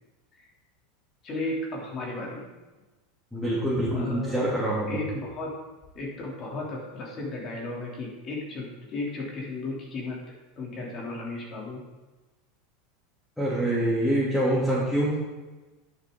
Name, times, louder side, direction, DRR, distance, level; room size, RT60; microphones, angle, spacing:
voice 1, 1.2-2.4 3.9-4.4 4.8-5.5 5.9-10.2 10.6-11.8, left 2 dB, 40° left, -3 dB, 3.3 m, -34 dB
voice 2, 3.3-5.0 13.4-15.1, right 1 dB, 5° left, -8 dB, 3.1 m, -25 dB
10.5 x 7.4 x 4.0 m, 1.2 s
hypercardioid pair, 95°, 0 cm